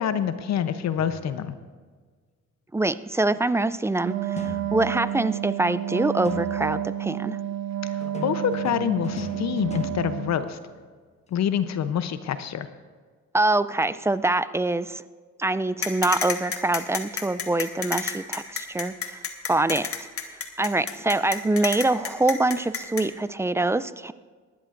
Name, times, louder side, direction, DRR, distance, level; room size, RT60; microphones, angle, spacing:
voice 1, 0.0-1.5 7.8-10.6 11.3-12.7, left 8 dB, 60° left, 11 dB, 0.8 m, -26 dB
sound 1, 1.0-1.7 4.4-5.2 6.3-7.0 8.0-11.0, left 2 dB, 20° left, 1.0 m, -39 dB
voice 2, 2.7-7.4 13.3-15.0 15.4-19.2 19.5-19.9 20.6-24.1, right 2 dB, 10° right, 15 dB, 0.3 m, -24 dB
Wind instrument woodwind instrument, 4.0-10.5, right 11 dB, 65° right, 0.7 m, -30 dB
sound 2, 15.8-23.0, left 6 dB, 45° left, 1.5 m, -30 dB
18.5 x 12.5 x 2.6 m, 1.5 s
cardioid pair, 90°, 30 cm